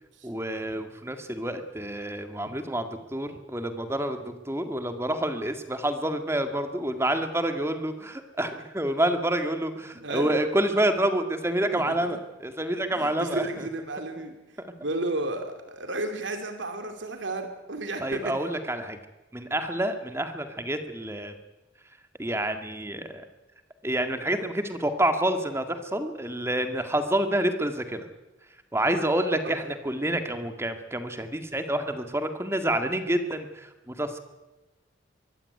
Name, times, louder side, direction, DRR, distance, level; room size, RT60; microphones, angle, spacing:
voice 1, 0.2-13.7 14.6-14.7 18.0-19.0 19.3-21.3 22.2-23.2 23.8-28.0 28.7-34.2, right 1 dB, 15° right, 7 dB, 1.9 m, -28 dB
voice 2, 10.0-10.4 11.7-12.2 12.9-14.3 14.8-18.3 29.4-29.6, right 2 dB, 70° right, 6 dB, 2.7 m, -33 dB
23.5 x 15.0 x 9.7 m, 1.1 s
head